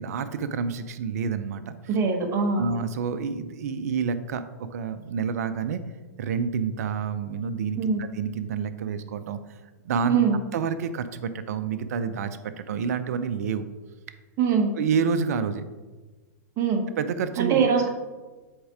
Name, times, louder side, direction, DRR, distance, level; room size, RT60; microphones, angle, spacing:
voice 1, 0.0-1.7 2.6-5.8 6.2-9.4 9.8-10.2 10.5-13.7 14.7-15.6 17.0-17.7, right 6 dB, 65° right, 12 dB, 0.6 m, -28 dB
voice 2, 1.9-2.7 7.8-8.0 10.1-10.4 14.4-14.7 16.6-16.9 17.4-17.9, right 6 dB, 35° right, 3 dB, 1.2 m, -22 dB
7.9 x 3.7 x 4.9 m, 1.3 s
hypercardioid pair, 115°, 9 cm